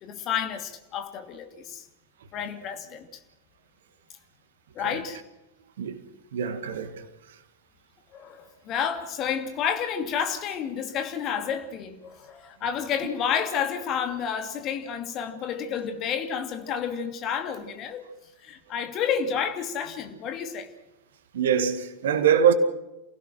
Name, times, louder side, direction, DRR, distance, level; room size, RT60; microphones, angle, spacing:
voice 1, 0.0-1.9 2.3-3.1 4.7-5.2 8.1-18.0 18.4-20.7, left 7 dB, 35° left, 2.6 m, -30 dB
voice 2, 6.3-7.0 21.3-22.5, right 8 dB, 60° right, 1.9 m, -23 dB
28.5 x 17.0 x 6.3 m
figure-of-eight pair, 90°, 0 cm